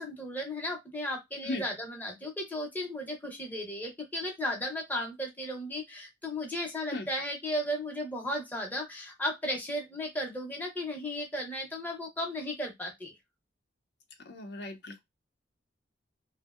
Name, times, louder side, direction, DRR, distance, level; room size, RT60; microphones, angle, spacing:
voice 1, 0.0-13.1, left 1 dB, 10° left, 0.6 m, -35 dB
voice 2, 14.3-15.0, left 2 dB, 65° left, 0.5 m, -36 dB
2.6 x 2.0 x 2.3 m
head